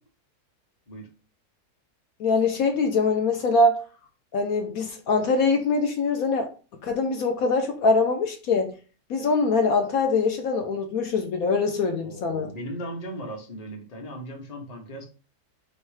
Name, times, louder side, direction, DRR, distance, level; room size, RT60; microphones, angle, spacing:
voice 1, 2.2-3.9 4.3-6.5 6.8-8.8 9.1-12.5, left 3 dB, 70° left, 1.1 m, -23 dB
voice 2, 12.0-15.1, equal, 30° left, 1.0 m, -37 dB
3.2 x 3.1 x 4.8 m
omnidirectional pair, 1.6 m